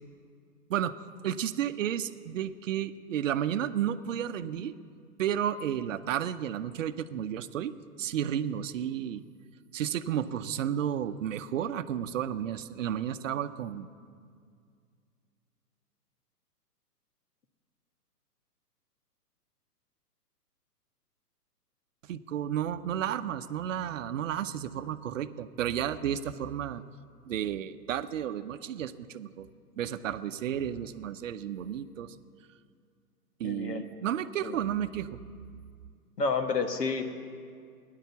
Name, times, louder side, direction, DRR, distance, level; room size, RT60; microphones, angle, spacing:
voice 1, 1.2-4.7 5.2-7.7 8.0-9.2 9.7-13.9 22.1-26.8 27.3-29.5 29.8-32.1 33.4-35.2, right 10 dB, 55° right, 12 dB, 0.7 m, -32 dB
voice 2, 33.4-33.8 34.4-34.6 36.2-37.0, left 4 dB, 85° left, 7 dB, 1.5 m, -29 dB
16.0 x 10.5 x 6.9 m, 2.2 s
hypercardioid pair, 125°, 47 cm